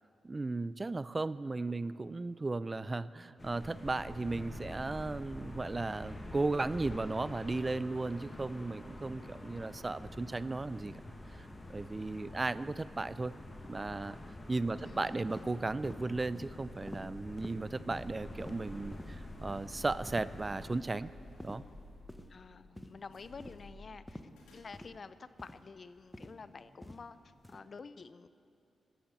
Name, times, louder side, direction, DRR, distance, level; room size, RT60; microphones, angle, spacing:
voice 1, 0.2-10.9 11.3-13.3 13.7-14.2 14.5-21.1 21.4-21.6, right 3 dB, 35° right, 17 dB, 0.4 m, -36 dB
sound 1, 3.4-20.7, left 1 dB, 25° left, 1.6 m, -47 dB
voice 2, 14.8-15.1 15.5-15.6 22.3-24.2 24.5-28.3, left 4 dB, 55° left, 14 dB, 0.5 m, -49 dB
sound 2, 15.3-15.5 15.8-16.0 16.3-16.5 16.9-17.0 17.4-17.5 17.9-18.1 18.4-18.6 18.9-19.1 19.5-19.7 20.1-20.3 20.7-20.9 21.4-21.6 22.1-22.3 22.8-23.0 23.4-23.6 24.1-24.3 24.7-24.9 25.4-25.6 26.1-26.4 26.8-27.0 27.4-27.6, left 1 dB, 10° left, 1.1 m, -47 dB
sound 3, 17.1-27.5, left 1 dB, 85° left, 2.7 m, -57 dB
13.5 x 9.3 x 7.7 m, 2.7 s
supercardioid pair, 45°, 0 cm